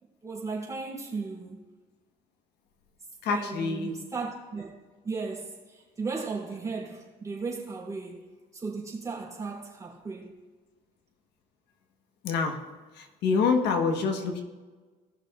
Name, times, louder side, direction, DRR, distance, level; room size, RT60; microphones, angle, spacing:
voice 1, 0.2-1.6 3.3-4.7 5.0-10.4, right 4 dB, 20° right, 3.4 m, -36 dB
voice 2, 3.2-4.0 12.2-12.6 12.9-14.4, left 5 dB, 80° left, 1.3 m, -26 dB
19.0 x 6.4 x 2.5 m
cardioid pair, 110°, 17 cm